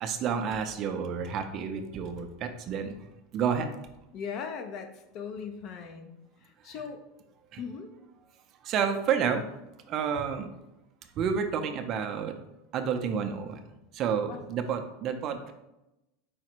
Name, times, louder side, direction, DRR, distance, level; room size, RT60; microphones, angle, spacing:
voice 1, 0.0-3.0 3.3-3.9 7.5-7.6 8.6-9.4 9.9-10.5 11.2-12.3 12.7-13.6 13.9-15.5, right 7 dB, 40° right, 7 dB, 0.4 m, -30 dB
voice 2, 4.1-6.1 6.4-7.0 7.6-7.9 14.3-14.4, left 6 dB, 40° left, 6 dB, 0.5 m, -39 dB
4.8 x 2.1 x 4.4 m, 0.91 s
supercardioid pair, 145°, 0 cm